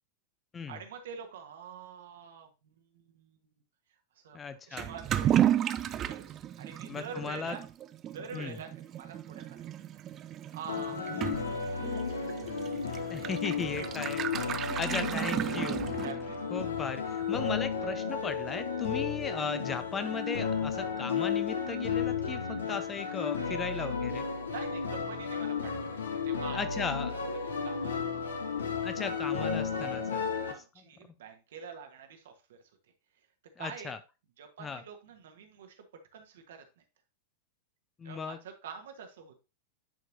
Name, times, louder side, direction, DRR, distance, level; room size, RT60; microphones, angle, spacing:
voice 1, 0.7-3.5 4.1-4.4 4.7-6.3 6.6-7.6 8.1-9.7 10.1-12.5 13.2-13.9 14.7-14.8 16.0-16.5 24.5-26.8 27.6-28.4 29.8-30.0 30.3-32.6 33.6-34.0 34.4-35.8 36.1-36.8 38.0-39.4, right 7 dB, 60° right, 5 dB, 1.3 m, -46 dB
voice 2, 4.3-4.9 6.9-7.6 8.3-8.6 13.1-14.2 14.8-15.8 16.5-24.2 26.5-27.2 28.8-30.2 33.6-34.0 34.6-34.8 38.0-38.4, left 5 dB, 20° left, 11 dB, 0.6 m, -37 dB
Toilet flush / Liquid, 4.8-16.4, right 11 dB, 30° right, 0.4 m, -33 dB
sound 1, 10.7-30.5, left 5 dB, 70° left, 1.0 m, -33 dB
10.0 x 4.5 x 2.7 m, 0.29 s
figure-of-eight pair, 90°, 0 cm